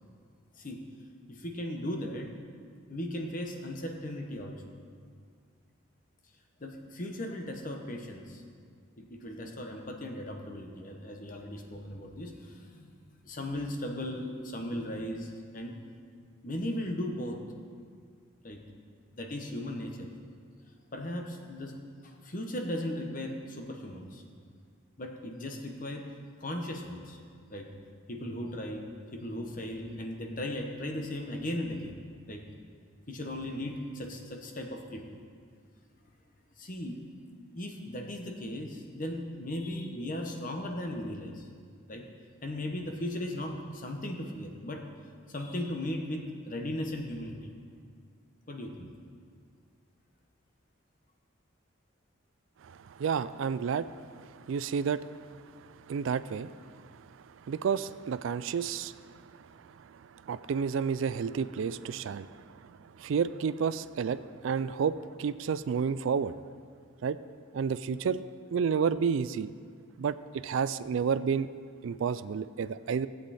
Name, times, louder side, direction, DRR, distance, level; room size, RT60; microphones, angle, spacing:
voice 1, 1.3-2.3 2.9-4.6 6.6-8.4 9.0-12.9 13.2-15.8 16.4-17.4 18.4-18.6 19.1-20.1 20.9-21.7 22.0-24.2 25.0-26.0 26.4-27.2 27.5-27.7 28.1-32.0 32.3-32.4 33.1-35.2 36.6-37.0 37.5-41.5 41.9-42.0 42.4-44.8 45.3-47.4 48.5-48.9, left 1 dB, 40° left, 3 dB, 1.1 m, -37 dB
voice 2, 52.6-55.1 55.6-57.1 57.4-59.5 59.8-62.7 63.0-66.3 67.0-67.2 67.5-68.2 68.5-69.5 70.0-71.5 71.8-73.1, right 6 dB, 70° right, 15 dB, 0.3 m, -31 dB
16.0 x 8.1 x 4.2 m, 2.1 s
head